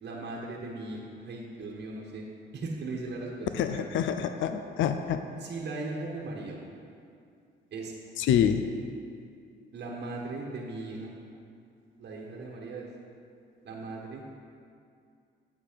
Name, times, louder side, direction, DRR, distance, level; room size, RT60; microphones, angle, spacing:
voice 1, 0.0-2.2 2.5-3.8 5.4-6.6 7.7-7.9 9.7-11.1 12.0-12.9 13.6-14.2, right 3 dB, 55° right, -2 dB, 1.2 m, -38 dB
voice 2, 3.5-5.2 8.2-8.6, left 9 dB, 75° left, 8 dB, 0.5 m, -26 dB
8.3 x 6.7 x 5.1 m, 2.4 s
cardioid pair, 90°, 20 cm